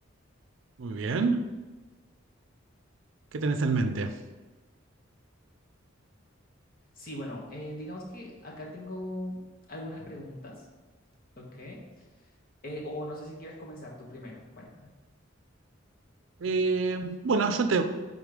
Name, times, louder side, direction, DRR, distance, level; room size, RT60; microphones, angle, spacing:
voice 1, 0.8-1.4 3.3-4.1 16.4-17.8, right 4 dB, 75° right, 9 dB, 0.5 m, -26 dB
voice 2, 6.9-9.4 9.7-10.6 11.4-12.0 12.6-14.9, left 1 dB, 45° left, -2 dB, 1.2 m, -40 dB
5.2 x 3.7 x 5.0 m, 1.2 s
head